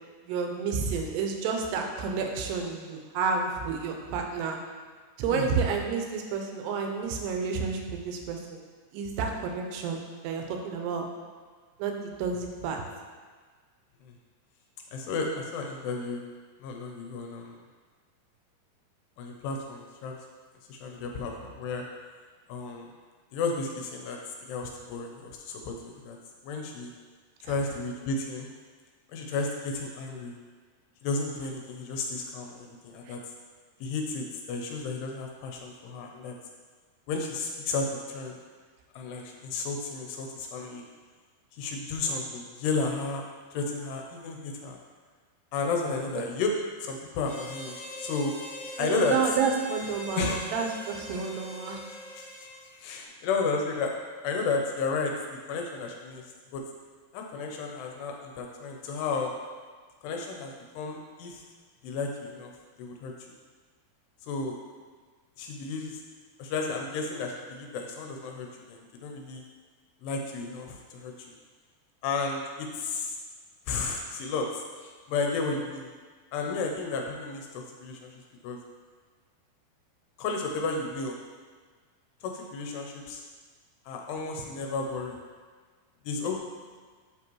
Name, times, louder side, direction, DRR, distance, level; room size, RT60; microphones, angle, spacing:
voice 1, 0.2-4.6 5.2-8.6 8.9-11.1 11.8-12.8 27.5-27.6 33.1-33.2 46.1-46.2 48.8-51.8, right 5 dB, 85° right, 3 dB, 2.8 m, -30 dB
voice 2, 14.9-16.2 16.6-17.6 19.2-20.2 20.7-21.9 22.5-22.9 23.3-24.2 24.5-26.2 26.4-26.9 27.4-28.5 29.1-30.4 31.0-33.2 33.8-36.4 37.1-38.4 39.0-40.8 41.5-43.2 43.5-44.8 45.5-48.3 48.8-49.4 50.2-50.5 52.8-53.9 54.2-55.1 55.5-56.2 56.5-56.6 57.1-59.3 60.0-61.4 61.8-62.5 62.8-63.1 64.2-64.6 65.4-66.0 66.4-69.4 70.0-71.3 72.0-73.2 73.7-75.9 76.3-78.1 78.4-78.6 80.2-81.2 82.2-83.2 83.9-85.2 86.1-86.4, left 4 dB, 80° left, 2 dB, 2.6 m, -32 dB
Harmonica, 47.2-52.9, left 1 dB, 45° left, 1.6 m, -42 dB
7.5 x 6.0 x 3.0 m, 1.5 s
omnidirectional pair, 4.9 m